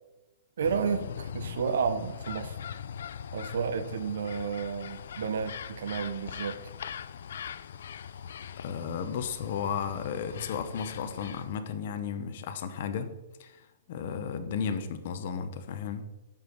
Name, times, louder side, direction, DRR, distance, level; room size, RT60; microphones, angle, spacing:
sound 1, 0.6-11.6, left 8 dB, 65° left, 0.3 m, -41 dB
voice 1, 0.6-2.6 3.3-6.6, right 6 dB, 75° right, 11 dB, 0.6 m, -31 dB
voice 2, 8.6-13.1 13.4-16.0, left 7 dB, 40° left, 8 dB, 0.7 m, -34 dB
7.3 x 4.8 x 5.1 m, 1.0 s
hypercardioid pair, 175°, 0 cm